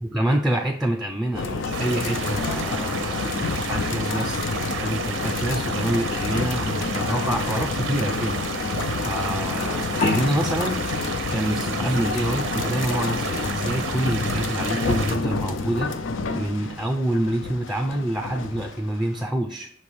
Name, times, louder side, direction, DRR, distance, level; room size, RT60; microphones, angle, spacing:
voice 1, 0.0-8.7 9.1-11.0 11.3-15.9 16.3-19.7, right 1 dB, ahead, 4 dB, 0.4 m, -27 dB
sound 1, 1.3-19.2, left 4 dB, 85° left, 0.5 m, -28 dB
sound 2, 1.7-15.2, right 6 dB, 80° right, 0.7 m, -32 dB
sound 3, 10.0-13.2, left 3 dB, 40° left, 0.7 m, -30 dB
6.1 x 3.3 x 5.2 m, 0.62 s
head